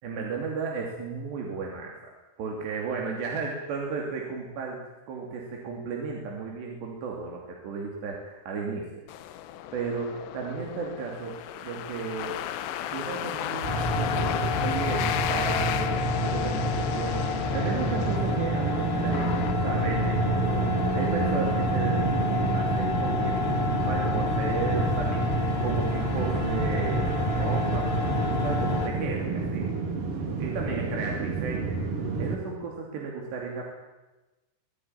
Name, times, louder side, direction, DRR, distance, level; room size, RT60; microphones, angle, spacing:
voice 1, 0.0-9.0 9.7-12.4 12.9-17.2 17.5-29.7 30.4-31.8 32.2-33.6, right 4 dB, 60° right, 0 dB, 4.7 m, -34 dB
sound 1, 9.1-20.3, left 11 dB, 70° left, 2.9 m, -35 dB
sound 2, 13.6-28.9, left 1 dB, 20° left, 1.8 m, -28 dB
sound 3, 17.5-32.4, right 4 dB, 35° right, 2.8 m, -30 dB
24.5 x 18.5 x 9.7 m, 1.1 s
omnidirectional pair, 5.9 m